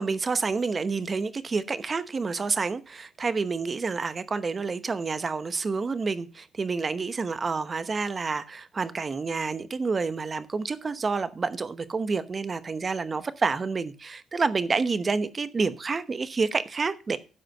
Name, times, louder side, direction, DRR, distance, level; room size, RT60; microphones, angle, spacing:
voice 1, 0.0-17.2, right 4 dB, 35° right, 0.9 m, -28 dB
12.0 x 5.1 x 6.6 m
cardioid pair, 90°, 0 cm